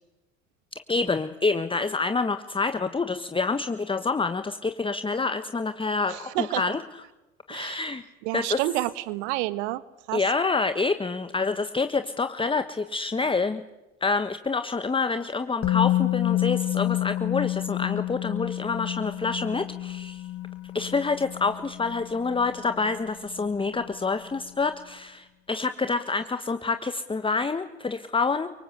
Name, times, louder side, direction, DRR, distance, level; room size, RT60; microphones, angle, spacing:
voice 1, 0.9-6.8 7.5-8.0 8.3-8.6 10.1-13.6 14.0-20.2 20.7-28.5, left 4 dB, 15° left, 10 dB, 1.4 m, -27 dB
voice 2, 6.1-6.8 7.5-7.8 8.2-9.8 10.1-10.2, right 17 dB, 60° right, 16 dB, 1.6 m, -29 dB
Musical instrument, 15.6-23.5 23.8-24.0, left 15 dB, 35° left, 1.4 m, -29 dB
29.5 x 24.5 x 8.0 m, 1.0 s
figure-of-eight pair, 65°, 39 cm